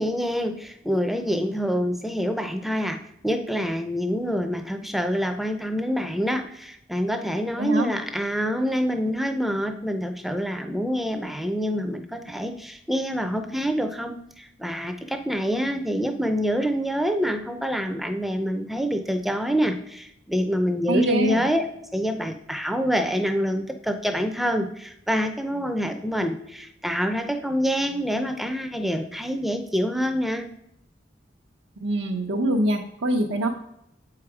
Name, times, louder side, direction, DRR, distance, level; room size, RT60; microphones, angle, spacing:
voice 1, 0.0-3.0 3.2-21.6 21.9-30.5, equal, ahead, 6 dB, 0.5 m, -26 dB
voice 2, 7.6-7.9 20.9-21.5 31.8-33.5, right 1 dB, 85° right, -1 dB, 0.8 m, -24 dB
7.7 x 4.8 x 4.8 m, 0.77 s
head